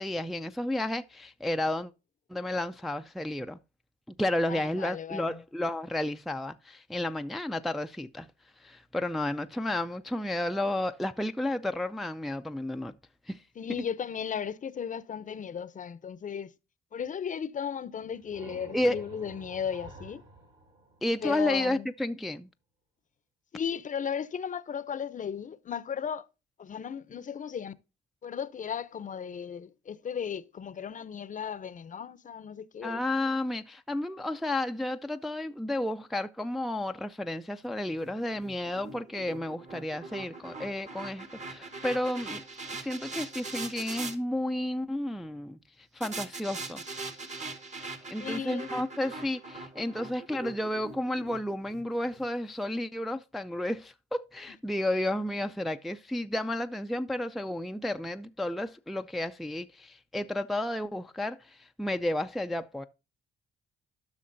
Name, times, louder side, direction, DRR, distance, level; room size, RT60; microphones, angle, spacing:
voice 1, 0.0-1.9 2.3-3.6 4.2-8.3 8.6-12.9 13.3-13.4 18.7-19.0 21.0-22.5 32.8-42.4 42.7-45.6 45.9-46.8 48.1-62.8, left 1 dB, ahead, 0.4 m, -32 dB
voice 2, 4.5-5.4 13.6-16.5 16.9-20.2 21.2-21.9 23.5-26.3 26.6-27.7 28.2-33.0 48.2-48.7, left 7 dB, 40° left, 0.6 m, -36 dB
sound 1, 17.9-21.6, right 2 dB, 65° right, 3.7 m, -50 dB
sound 2, 38.0-44.1 46.0-52.2, right 3 dB, 35° right, 1.2 m, -41 dB
12.5 x 5.9 x 2.6 m
cardioid pair, 90°, 20 cm